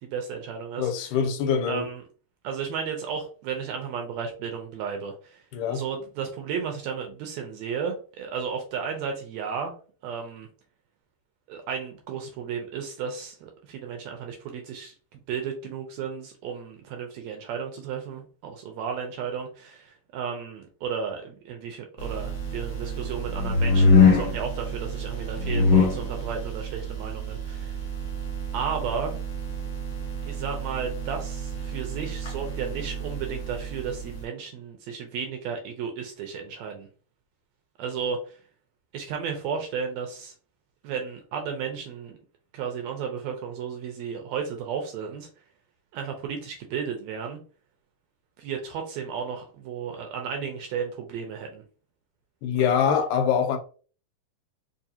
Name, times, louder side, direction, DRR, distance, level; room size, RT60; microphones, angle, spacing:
voice 1, 0.0-1.2 1.6-2.0 2.4-9.7 10.0-10.5 11.5-27.8 28.5-29.1 30.2-36.9 37.8-38.4 38.9-40.3 40.8-42.2 42.5-45.3 45.9-47.4 48.4-51.6 52.5-52.7, right 6 dB, 75° right, 1.7 m, -33 dB
voice 2, 0.8-1.9 5.5-5.8 52.4-53.6, left 7 dB, 90° left, 2.2 m, -24 dB
sound 1, 22.0-34.2, left 3 dB, 55° left, 0.9 m, -26 dB
4.7 x 2.4 x 2.8 m
omnidirectional pair, 3.5 m